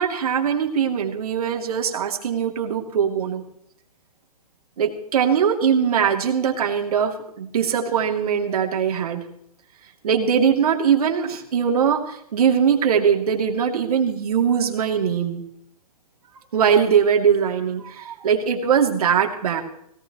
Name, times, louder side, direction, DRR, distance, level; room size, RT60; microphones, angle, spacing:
voice 1, 0.0-3.4 4.8-9.2 10.0-15.4 16.5-19.6, right 7 dB, 70° right, 3 dB, 2.9 m, -21 dB
18.0 x 17.0 x 3.1 m, 0.73 s
hypercardioid pair, 145°, 20 cm